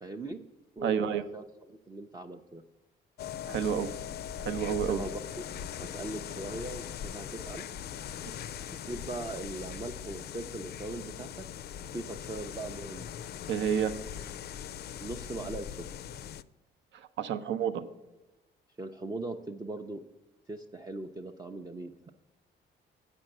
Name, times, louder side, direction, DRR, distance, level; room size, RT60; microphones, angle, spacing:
voice 1, 0.0-0.4 0.8-2.6 4.7-5.4 5.7-7.7 8.6-11.5 11.9-13.1 15.0-15.7 18.8-20.0 20.5-22.1, right 2 dB, 20° right, 3 dB, 0.5 m, -40 dB
voice 2, 0.8-1.2 3.5-3.9 4.4-5.0 8.2-8.5 13.5-13.9 16.9-17.8, right 8 dB, 75° right, 10 dB, 0.7 m, -30 dB
sound 1, 3.2-16.4, left 9 dB, 55° left, 0.4 m, -40 dB
7.7 x 5.3 x 7.6 m, 1.0 s
cardioid pair, 100°, 19 cm